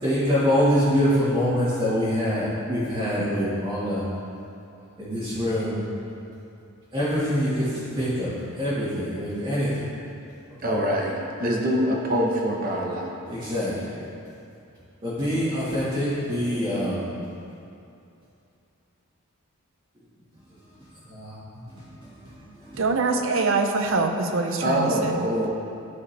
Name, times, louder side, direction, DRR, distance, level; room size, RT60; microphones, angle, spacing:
voice 1, 0.0-4.0 5.0-5.8 6.9-7.7 8.0-9.7 13.3-13.9 15.0-17.1 21.1-21.4 21.8-22.8, equal, 25° right, -12 dB, 1.5 m, -25 dB
voice 2, 10.6-13.1 24.6-25.5, equal, 40° right, -1 dB, 1.0 m, -24 dB
voice 3, 22.8-25.3, right 3 dB, 60° right, 5 dB, 0.6 m, -24 dB
12.5 x 4.8 x 3.3 m, 2.7 s
head